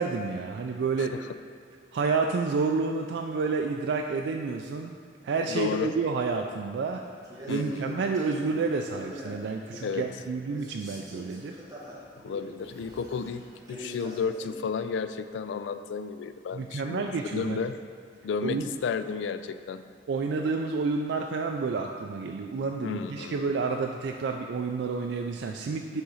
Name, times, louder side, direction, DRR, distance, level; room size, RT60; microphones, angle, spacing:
voice 1, 0.0-1.1 1.9-4.9 5.2-7.0 7.5-11.6 16.5-17.6 18.4-18.7 20.1-26.0, right 4 dB, 75° right, 3 dB, 0.3 m, -29 dB
voice 2, 1.0-1.3 5.5-5.9 7.5-7.9 9.8-10.1 12.2-13.4 13.7-17.0 17.3-17.8 18.2-19.8 22.8-23.4, left 5 dB, 85° left, 11 dB, 0.3 m, -32 dB
Male speech man speaking, 7.2-10.2 10.5-14.6, equal, 20° right, 1.0 m, -43 dB
5.6 x 3.8 x 5.5 m, 2.2 s
head